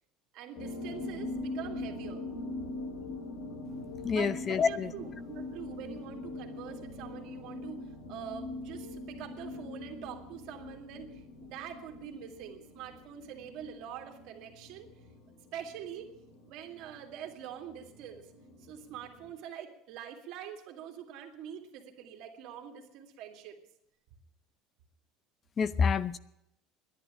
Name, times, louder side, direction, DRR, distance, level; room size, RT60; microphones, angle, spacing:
voice 1, 0.3-2.2 4.1-14.9 15.5-16.1 16.5-18.3 18.6-23.6, right 9 dB, 65° right, 4 dB, 2.2 m, -45 dB
sound 1, 0.6-19.3, left 2 dB, 80° left, 2.8 m, -43 dB
voice 2, 4.0-4.9 25.6-26.2, left 6 dB, 30° left, 16 dB, 0.6 m, -27 dB
11.0 x 10.5 x 8.8 m, 0.81 s
supercardioid pair, 125°, 0 cm